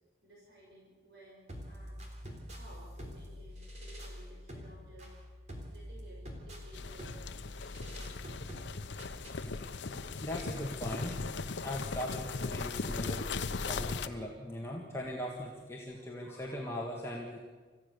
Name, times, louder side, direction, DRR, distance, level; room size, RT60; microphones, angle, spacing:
voice 1, 0.2-2.0 2.5-5.2 5.7-8.2, right 1 dB, 65° right, -4 dB, 5.9 m, -56 dB
sound 1, 1.5-9.5, equal, 40° right, 3.6 m, -46 dB
sound 2, 6.7-14.1, left 4 dB, 80° left, 0.8 m, -38 dB
voice 2, 10.2-13.3 13.6-17.4, left 1 dB, 15° left, -2 dB, 1.9 m, -40 dB
26.5 x 15.0 x 6.9 m, 1.5 s
head